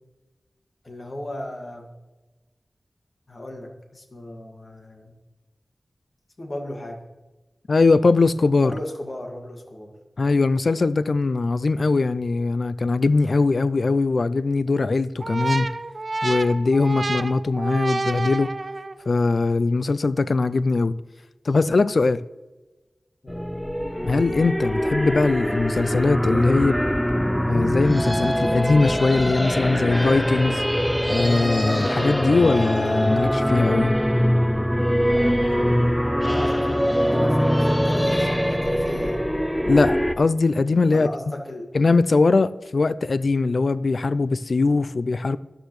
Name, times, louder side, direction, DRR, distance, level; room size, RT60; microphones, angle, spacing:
voice 1, 0.8-1.9 3.3-5.1 6.4-7.1 8.6-9.9 23.2-23.4 26.5-26.8 35.1-39.3 40.9-41.7, left 1 dB, 50° left, 2.0 m, -36 dB
voice 2, 7.7-8.7 10.2-15.7 16.2-18.5 19.1-21.0 21.4-22.2 24.0-26.7 27.5-30.6 31.1-34.0 39.6-41.1 41.7-45.4, left 3 dB, 70° left, 0.4 m, -21 dB
sound 1, 15.2-19.1, right 2 dB, 50° right, 0.5 m, -29 dB
sound 2, 23.3-40.1, equal, 5° left, 0.5 m, -23 dB
13.0 x 11.5 x 3.2 m
wide cardioid pair, 65°, 0 cm